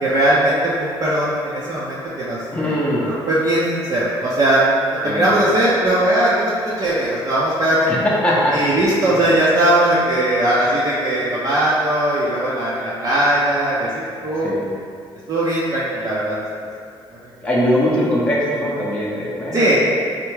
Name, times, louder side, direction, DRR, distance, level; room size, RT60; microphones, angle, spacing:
voice 1, 0.0-2.4 2.6-2.7 3.0-4.6 5.0-7.9 8.5-14.5 15.3-16.4 19.5-19.8, right 1 dB, 40° right, -8 dB, 0.5 m, -19 dB
voice 2, 2.5-3.1 5.0-5.3 7.9-8.6 14.4-14.6 17.4-19.7, equal, 10° left, -7 dB, 0.6 m, -20 dB
3.4 x 2.0 x 3.1 m, 2.2 s
cardioid pair, 100°, 10 cm